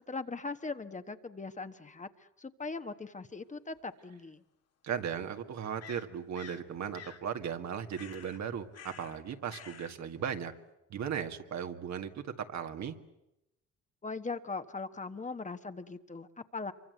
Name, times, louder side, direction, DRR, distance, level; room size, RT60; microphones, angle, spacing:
voice 1, 0.1-2.1 2.4-4.4 14.0-16.7, left 4 dB, 25° left, 9 dB, 1.3 m, -40 dB
sound 1, 3.8-3.9 5.8-6.7 6.9-7.2 7.9-8.4 8.7-9.2 9.5-9.9, left 7 dB, 55° left, 1.9 m, -49 dB
voice 2, 4.8-10.5 10.9-13.0, right 8 dB, 65° right, 6 dB, 2.0 m, -37 dB
26.0 x 24.0 x 8.0 m, 0.89 s
cardioid pair, 90°, 30 cm